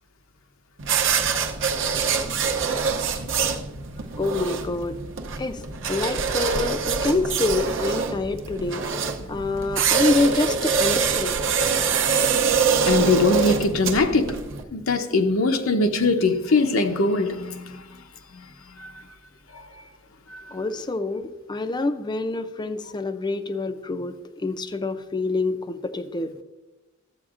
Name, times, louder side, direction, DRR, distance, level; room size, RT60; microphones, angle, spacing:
sound 1, 0.8-14.6, right 6 dB, 65° right, 0.7 m, -24 dB
voice 1, 4.2-5.0 5.4-8.9 9.3-11.4 20.5-24.2 24.4-26.4, left 2 dB, 20° left, 0.4 m, -26 dB
voice 2, 12.9-14.4 14.7-17.9 18.3-18.4 18.8-18.9 19.5-19.7 20.3-20.4, left 3 dB, 80° left, 0.7 m, -22 dB
13.0 x 7.8 x 2.4 m
head